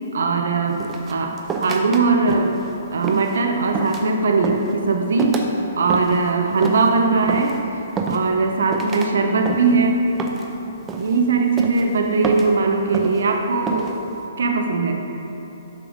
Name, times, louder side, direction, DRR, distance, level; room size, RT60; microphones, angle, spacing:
voice 1, 0.1-2.6 2.9-5.4 5.8-7.6 8.1-10.1 11.0-13.9 14.4-15.0, right 4 dB, 70° right, 3 dB, 0.5 m, -20 dB
sound 1, 0.8-2.0 2.3-2.6 3.0-3.4 3.7-4.1 4.4-4.7 5.2-5.5 5.9-6.3 6.6-6.9 7.3-7.6 8.0-8.5 8.7-9.1 9.5-9.8 10.2-10.5 10.9-11.2 11.6-11.9 12.2-12.6 12.9-13.2 13.7-14.0, right 4 dB, 15° right, 0.5 m, -27 dB
7.1 x 3.3 x 5.0 m, 3.0 s
hypercardioid pair, 130°, 0 cm